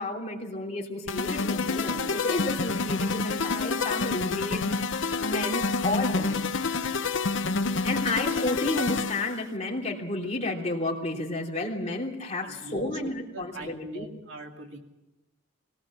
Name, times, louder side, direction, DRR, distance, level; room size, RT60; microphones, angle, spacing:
voice 1, 0.0-6.5 7.8-14.0, left 2 dB, 30° left, -1 dB, 3.0 m, -31 dB
sound 1, 1.1-9.4, left 4 dB, 65° left, 0.7 m, -28 dB
voice 2, 12.4-13.0 13.3-14.8, right 1 dB, 65° right, 2 dB, 2.6 m, -41 dB
22.0 x 18.0 x 7.4 m, 0.99 s
head